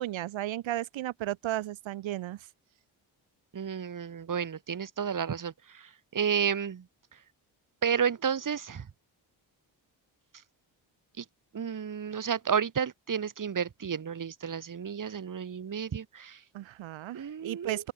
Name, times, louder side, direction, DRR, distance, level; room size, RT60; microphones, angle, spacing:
voice 1, 0.0-2.5 16.5-17.9, right 14 dB, 75° right, 1.2 m, -34 dB
voice 2, 3.5-5.5 6.1-6.8 7.8-8.9 11.2-11.3 11.5-16.4 17.1-17.8, right 7 dB, 45° right, 1.6 m, -31 dB
open air
supercardioid pair, 50°, 46 cm